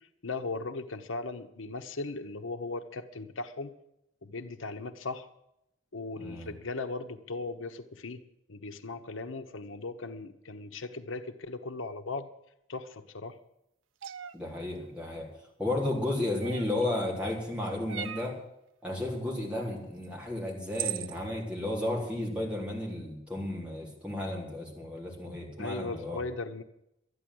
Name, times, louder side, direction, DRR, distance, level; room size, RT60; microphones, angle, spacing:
voice 1, 0.0-3.7 4.2-5.3 5.9-8.2 8.5-12.3 12.7-13.4 25.6-26.6, left 3 dB, 90° left, 7 dB, 1.0 m, -38 dB
voice 2, 6.2-6.5 14.3-15.3 15.6-18.4 18.8-26.2, left 1 dB, 5° right, -3 dB, 3.9 m, -33 dB
sound 1, 14.0-14.3 16.4-16.8 17.9-18.3 20.0-20.1 20.7-21.1, right 11 dB, 80° right, 0.6 m, -37 dB
13.0 x 10.0 x 7.8 m, 0.84 s
head